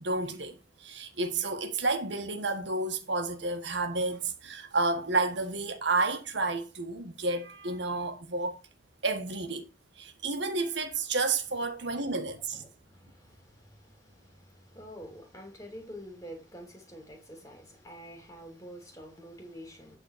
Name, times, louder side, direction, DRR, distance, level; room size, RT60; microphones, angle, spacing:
voice 1, 0.0-8.6 9.0-9.7 10.0-12.7, right 3 dB, 70° right, 1.5 m, -31 dB
voice 2, 12.5-20.0, equal, 20° left, 3.2 m, -47 dB
9.1 x 4.0 x 6.7 m
head